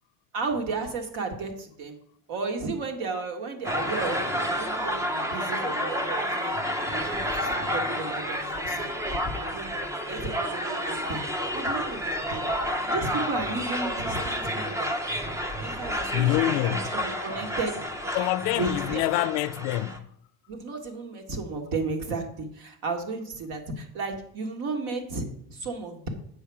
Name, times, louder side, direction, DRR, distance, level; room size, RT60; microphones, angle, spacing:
voice 1, 0.3-2.0 2.3-6.6 6.9-8.9 9.3-9.7 10.1-11.2 11.5-12.0 12.3-12.5 12.9-14.9 15.6-17.7 18.6-19.1 20.5-26.1, right 4 dB, 55° right, 1.8 m, -33 dB
sound 1, 3.6-20.0, equal, 5° right, 0.4 m, -30 dB
voice 2, 16.1-16.9 18.1-20.1, left 16 dB, 70° left, 0.5 m, -26 dB
8.0 x 5.7 x 4.8 m
cardioid pair, 145°, 44 cm